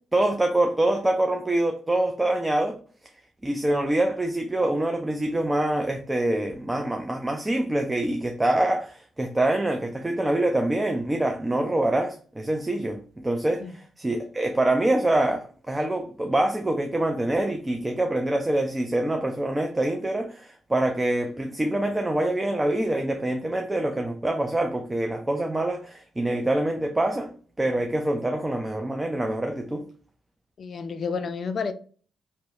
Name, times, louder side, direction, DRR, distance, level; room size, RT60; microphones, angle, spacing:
voice 1, 0.1-2.8 3.4-27.3 27.6-29.9, right 1 dB, 20° right, 0.4 m, -25 dB
voice 2, 30.6-31.7, left 5 dB, 55° left, 0.3 m, -30 dB
2.8 x 2.0 x 2.6 m
supercardioid pair, 55°, 0 cm